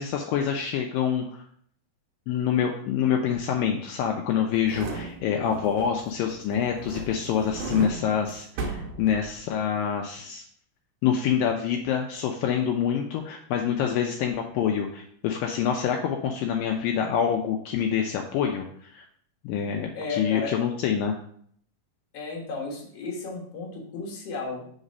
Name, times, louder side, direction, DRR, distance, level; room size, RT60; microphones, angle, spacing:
voice 1, 0.0-1.4 2.3-10.4 11.0-19.0 19.4-21.2, left 8 dB, 80° left, 2 dB, 2.2 m, -26 dB
sound 1, 4.5-6.2 6.5-9.6 10.0-10.1, right 4 dB, 90° right, 1.4 m, -36 dB
voice 2, 19.9-20.5 22.1-24.7, left 3 dB, 55° left, -2 dB, 2.1 m, -34 dB
5.0 x 4.0 x 5.4 m, 0.62 s
omnidirectional pair, 4.1 m